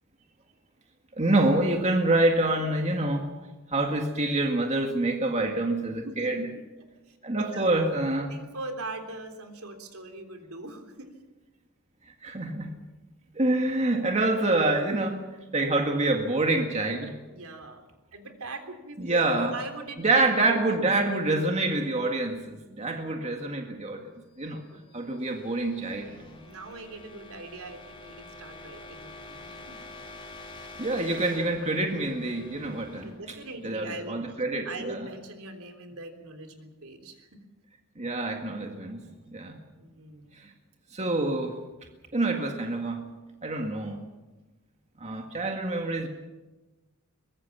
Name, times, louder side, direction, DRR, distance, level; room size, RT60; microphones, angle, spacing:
voice 1, 1.1-3.3 3.7-6.5 7.2-8.3 12.2-12.7 13.3-17.2 19.0-19.5 20.0-24.1 24.4-24.6 24.9-26.2 30.8-33.1 33.6-35.1 38.0-39.6 40.4-40.5 40.9-41.6 42.1-43.1 43.4-44.0 45.0-46.1, right 2 dB, 30° right, 3 dB, 1.9 m, -26 dB
voice 2, 5.9-6.6 7.1-7.7 8.2-11.1 17.3-17.8 18.1-20.8 24.7-25.2 26.0-29.7 32.7-34.4 34.6-37.3 39.2-39.3 39.6-40.4, right 2 dB, 75° right, 6 dB, 3.5 m, -41 dB
sound 1, 24.5-34.3, left 2 dB, 25° left, 4.0 m, -47 dB
23.0 x 21.0 x 7.2 m, 1.1 s
head